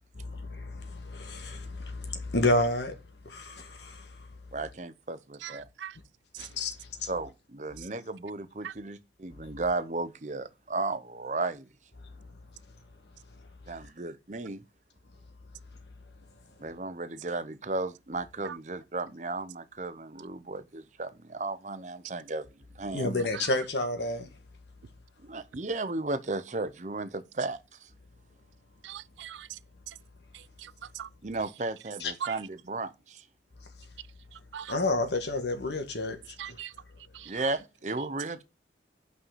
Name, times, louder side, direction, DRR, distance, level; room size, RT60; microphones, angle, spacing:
voice 1, 0.3-3.0 3.2-4.0 6.4-6.7 7.0-7.1 22.9-24.3 32.0-32.1 34.7-36.2, left 2 dB, 75° left, 1.4 m, -30 dB
voice 2, 4.5-5.7 7.1-11.7 13.7-14.6 16.6-22.5 22.8-23.1 25.2-27.9 31.2-33.2 37.3-38.4, right 3 dB, 40° right, 0.7 m, -34 dB
voice 3, 5.4-6.0 6.3-6.5 8.6-8.7 18.4-18.6 23.3-23.5 28.8-29.6 30.3-31.1 32.2-32.3 34.3-34.8 36.4-36.7 37.1-37.4, right 9 dB, 90° right, 0.4 m, -41 dB
5.7 x 5.6 x 5.7 m
head